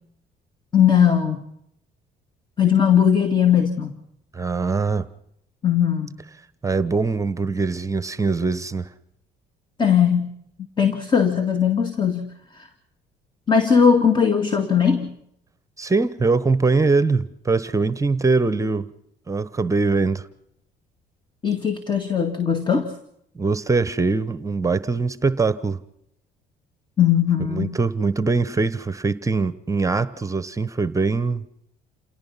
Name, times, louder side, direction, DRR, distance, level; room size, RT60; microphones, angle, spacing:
voice 1, 0.7-1.4 2.6-4.0 5.6-6.2 9.8-10.3 10.8-12.7 13.5-15.1 21.4-22.9 27.0-27.8, left 7 dB, 25° left, 2.1 m, -19 dB
voice 2, 4.3-5.1 6.6-8.9 15.8-18.9 19.3-20.2 23.3-25.8 27.5-31.4, right 4 dB, 20° right, 1.1 m, -22 dB
28.5 x 18.0 x 5.7 m
cardioid pair, 110°, 17 cm